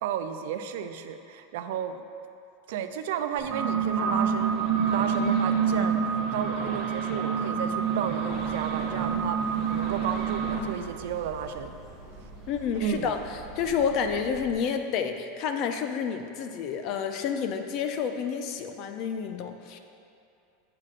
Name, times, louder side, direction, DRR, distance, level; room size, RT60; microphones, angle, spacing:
voice 1, 0.0-2.0 2.7-6.0 6.3-9.4 9.7-11.7 12.7-13.1, right 8 dB, 65° right, 8 dB, 0.4 m, -33 dB
sound 1, 3.4-10.6, right 6 dB, 30° right, 1.0 m, -27 dB
sound 2, 8.3-14.5, right 3 dB, 10° right, 1.6 m, -46 dB
voice 2, 12.5-13.2 13.6-19.8, left 7 dB, 35° left, 6 dB, 0.4 m, -29 dB
7.5 x 7.5 x 2.5 m, 2.6 s
supercardioid pair, 170°, 0 cm